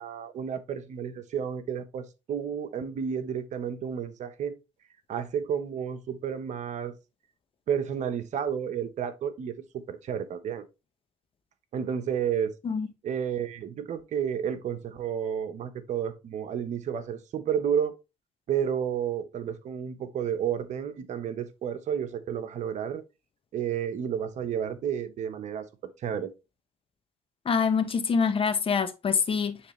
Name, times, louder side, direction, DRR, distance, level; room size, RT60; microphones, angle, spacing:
voice 1, 0.0-4.6 5.1-6.9 7.7-10.6 11.7-12.5 13.0-17.9 18.5-23.0 23.5-26.3, right 8 dB, 55° right, 1.0 m, -31 dB
voice 2, 27.4-29.6, left 6 dB, 40° left, 1.1 m, -25 dB
9.8 x 3.4 x 3.1 m
supercardioid pair, 70°, 14 cm